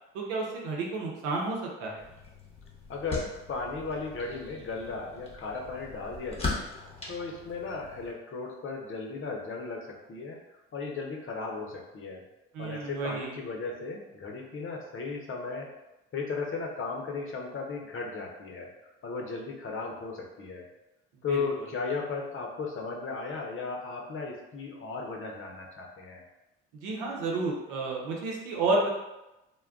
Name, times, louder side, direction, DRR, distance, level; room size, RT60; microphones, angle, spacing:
voice 1, 0.1-2.0 12.5-13.4 21.3-21.4 26.7-28.9, right 3 dB, 80° right, -1 dB, 0.7 m, -31 dB
sound 1, 2.0-8.1, left 3 dB, 20° left, 0.9 m, -40 dB
voice 2, 2.9-10.4 10.7-12.2 12.6-15.7 16.1-18.7 19.0-20.7 21.2-26.2, left 4 dB, 45° left, 1 dB, 0.7 m, -36 dB
2.2 x 2.2 x 3.5 m, 0.97 s
supercardioid pair, 70°, 30 cm